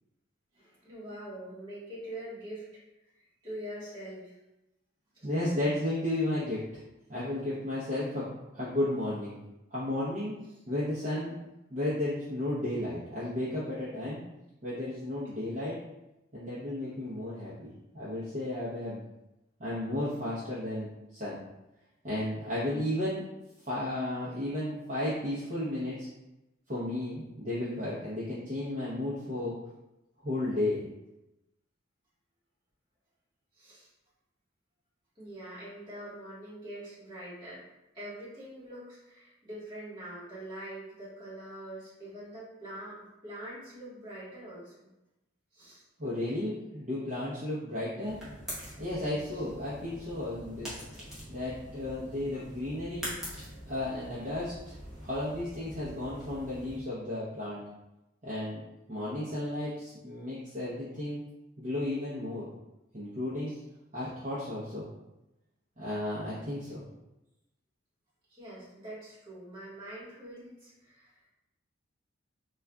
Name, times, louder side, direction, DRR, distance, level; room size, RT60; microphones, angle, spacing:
voice 1, 0.5-2.6 3.4-4.4 5.1-5.3 33.5-33.9 35.1-37.6 37.9-43.0 43.2-44.9 45.5-45.8 63.5-63.6 68.3-71.2, right 1 dB, 25° right, -10 dB, 1.3 m, -44 dB
voice 2, 5.2-6.6 7.1-9.4 9.7-10.4 10.7-11.4 11.7-14.2 14.6-15.8 16.3-19.0 19.6-21.4 22.0-23.2 23.7-26.1 26.7-29.5 30.2-30.8 46.0-48.2 48.8-50.8 51.3-53.2 53.7-54.5 55.0-57.6 58.2-61.2 61.6-62.5 62.9-63.5 63.9-64.9 65.8-66.8, left 1 dB, 40° right, -11 dB, 0.7 m, -33 dB
sound 1, 48.0-56.8, equal, 5° right, 0.8 m, -44 dB
3.6 x 2.4 x 2.2 m, 0.94 s
head